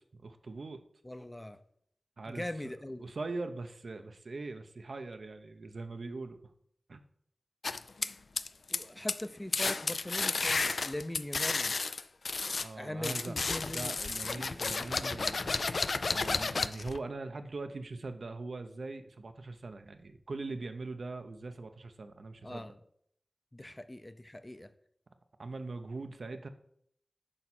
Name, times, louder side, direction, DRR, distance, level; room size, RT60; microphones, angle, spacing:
voice 1, 0.2-0.8 2.2-2.5 3.0-6.4 6.9-7.0 12.6-13.4 13.7-15.7 16.1-22.7 25.4-26.5, right 3 dB, 75° right, 8 dB, 0.7 m, -41 dB
voice 2, 1.0-1.6 2.3-3.0 8.7-11.8 12.8-14.0 22.4-22.7 23.5-24.7, left 1 dB, 20° left, 11 dB, 0.5 m, -41 dB
sound 1, 7.6-8.8 9.1-9.3 9.5-12.7 13.0-17.0, left 3 dB, 75° left, 0.3 m, -32 dB
8.8 x 5.5 x 4.2 m, 0.67 s
wide cardioid pair, 80°, 0 cm